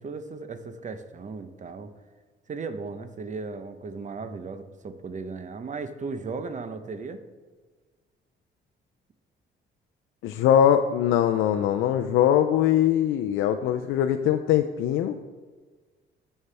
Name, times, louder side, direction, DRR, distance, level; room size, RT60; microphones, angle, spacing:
voice 1, 0.0-1.9 2.5-7.2, right 4 dB, 40° right, 9 dB, 0.8 m, -36 dB
voice 2, 10.2-15.2, left 10 dB, 85° left, 7 dB, 0.4 m, -22 dB
13.0 x 5.5 x 3.4 m, 1.4 s
cardioid pair, 90°, 20 cm